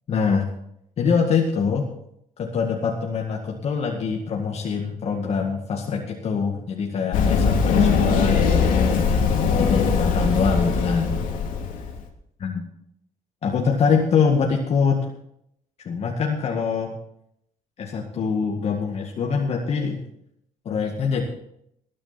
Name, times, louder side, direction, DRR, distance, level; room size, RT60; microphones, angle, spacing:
voice 1, 0.1-0.5 1.0-1.9 2.4-11.1 12.4-12.6 13.4-15.1 15.8-17.0 17.8-20.0 20.7-21.2, left 5 dB, 50° left, 0 dB, 2.0 m, -24 dB
Run, 7.1-11.9, left 5 dB, 85° left, 2.7 m, -20 dB
19.5 x 9.9 x 4.3 m, 0.73 s
cardioid pair, 130°, 14 cm